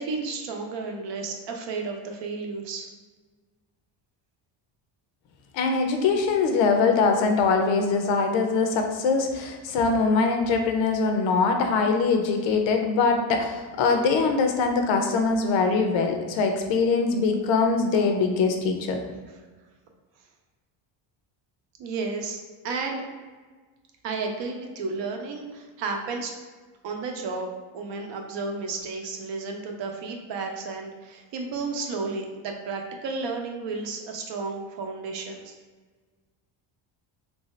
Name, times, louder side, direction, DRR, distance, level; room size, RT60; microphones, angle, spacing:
voice 1, 0.0-2.9 21.8-22.4 22.6-23.1 24.0-26.3 26.8-35.5, right 4 dB, 60° right, 3 dB, 0.7 m, -32 dB
voice 2, 5.5-19.0, left 4 dB, 65° left, 4 dB, 0.6 m, -23 dB
3.2 x 2.7 x 3.1 m, 1.4 s
cardioid pair, 145°, 48 cm